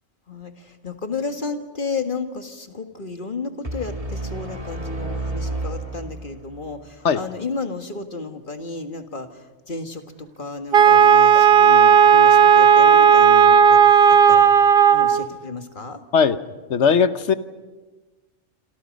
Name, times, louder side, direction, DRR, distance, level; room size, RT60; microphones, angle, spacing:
voice 1, 0.3-14.5 14.9-16.0, left 4 dB, 45° left, 6 dB, 1.8 m, -32 dB
sound 1, 3.6-6.7, right 2 dB, 30° right, 2.8 m, -30 dB
Wind instrument woodwind instrument, 10.7-15.3, right 7 dB, 50° right, 1.1 m, -13 dB
voice 2, 16.7-17.3, left 6 dB, 70° left, 12 dB, 1.2 m, -18 dB
27.0 x 27.0 x 5.3 m, 1.2 s
omnidirectional pair, 1.3 m